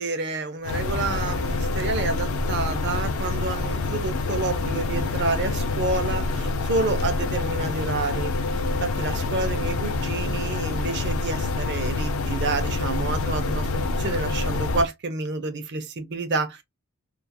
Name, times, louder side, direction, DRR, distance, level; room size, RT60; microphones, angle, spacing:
voice 1, 0.0-16.6, right 3 dB, 55° right, 0.5 m, -29 dB
sound 1, 0.6-14.9, left 3 dB, 70° left, 0.4 m, -26 dB
2.4 x 2.3 x 2.6 m
head